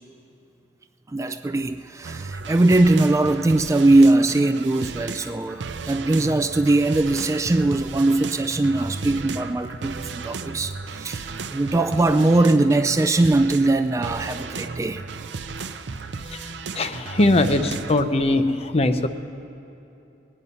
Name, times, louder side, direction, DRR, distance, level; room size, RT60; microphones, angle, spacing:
voice 1, 1.1-15.0, right 2 dB, 15° right, 0.3 m, -20 dB
sound 1, 2.0-18.0, right 4 dB, 80° right, 0.6 m, -34 dB
voice 2, 16.7-19.1, left 2 dB, 35° left, 0.6 m, -20 dB
21.0 x 9.8 x 5.5 m
head